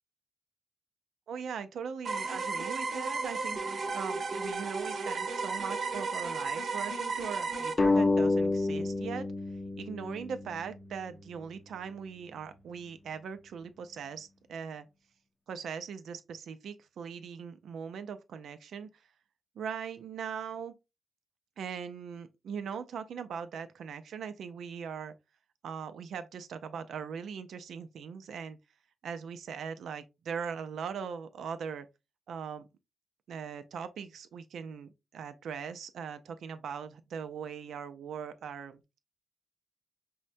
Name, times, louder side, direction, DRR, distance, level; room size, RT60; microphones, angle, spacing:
voice 1, 1.3-9.3 9.8-14.9 15.5-18.9 19.6-20.7 21.6-25.1 25.6-28.6 29.0-31.9 32.3-32.7 33.3-38.8, right 7 dB, 80° right, 0.4 m, -40 dB
sound 1, 2.0-7.7, right 4 dB, 60° right, 0.9 m, -34 dB
sound 2, 7.8-11.0, left 3 dB, 30° left, 0.6 m, -29 dB
5.4 x 2.1 x 2.5 m
cardioid pair, 110°, 0 cm